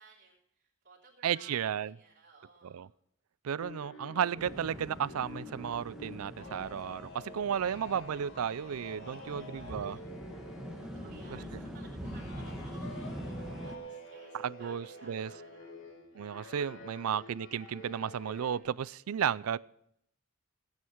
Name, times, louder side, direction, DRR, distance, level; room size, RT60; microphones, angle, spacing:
voice 1, 0.0-2.9 7.5-8.2 9.1-10.0 10.9-15.8 16.6-17.1, right 4 dB, 55° right, -8 dB, 3.4 m, -59 dB
voice 2, 1.2-1.9 2.6-2.9 3.4-10.0 11.3-11.4 14.4-15.3 16.1-19.6, right 8 dB, 85° right, 22 dB, 0.4 m, -33 dB
sound 1, 3.6-18.6, left 1 dB, 60° left, 2.2 m, -48 dB
sound 2, 4.4-13.8, equal, ahead, 1.5 m, -44 dB
16.0 x 9.5 x 4.5 m, 0.73 s
head